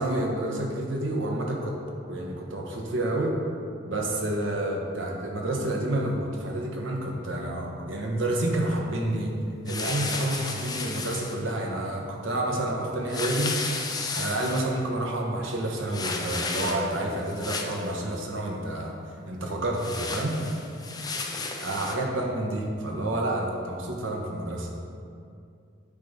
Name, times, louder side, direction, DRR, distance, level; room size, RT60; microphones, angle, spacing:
voice 1, 0.0-1.8 2.1-3.4 3.9-9.4 9.6-13.5 14.1-19.0 19.3-20.4 21.6-24.7, right 1 dB, 85° right, 0 dB, 1.1 m, -29 dB
sound 1, 9.7-11.4 13.1-14.7 15.9-17.0 17.3-17.9 19.8-21.9, left 4 dB, 20° left, 0.5 m, -33 dB
8.5 x 3.7 x 5.6 m, 2.4 s
head